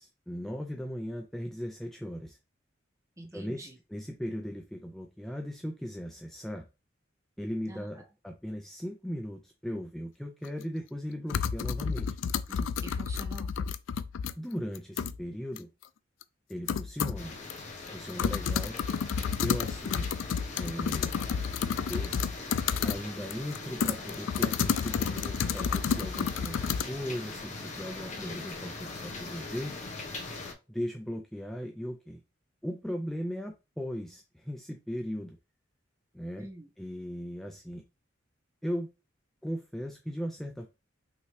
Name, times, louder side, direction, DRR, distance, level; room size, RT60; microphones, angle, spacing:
voice 1, 0.0-2.4 3.3-6.7 7.4-12.2 14.4-15.7 16.5-17.4 17.9-18.8 19.4-20.1 20.6-21.1 21.9-22.1 22.8-29.8 30.7-32.2 32.6-35.4 36.1-36.5 36.8-37.8 38.6-38.9 39.4-40.7, equal, ahead, 3 dB, 0.4 m, -38 dB
voice 2, 3.2-3.8 7.7-7.9 12.5-13.5 28.2-28.5 36.4-36.7, right 1 dB, 15° right, 4 dB, 0.9 m, -45 dB
sound 1, 10.4-10.5 11.3-14.3 14.7-15.2 15.6-15.7 16.2-16.3 16.7-17.2 17.5-17.6 17.9-23.0 23.3-26.8, left 6 dB, 80° left, 0.4 m, -30 dB
sound 2, 17.2-30.5, left 3 dB, 40° left, 1.0 m, -41 dB
5.5 x 3.0 x 3.2 m, 0.28 s
head